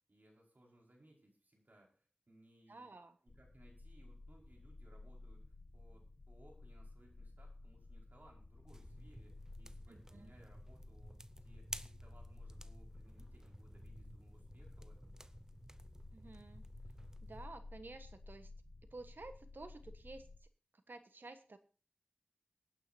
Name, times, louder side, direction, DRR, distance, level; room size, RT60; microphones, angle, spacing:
voice 1, 0.0-2.9 3.2-5.4 5.7-15.2, right 1 dB, 60° right, -1 dB, 5.3 m, -66 dB
voice 2, 2.7-3.2 9.9-10.3 16.1-16.6 17.2-18.5 18.9-20.3 20.9-21.6, right 2 dB, 75° right, 9 dB, 1.3 m, -52 dB
sound 1, 3.3-20.4, left 2 dB, 75° left, 1.6 m, -55 dB
sound 2, 8.7-17.5, right 1 dB, 15° right, 0.6 m, -54 dB
24.5 x 9.3 x 2.8 m, 0.35 s
wide cardioid pair, 60°, 3 cm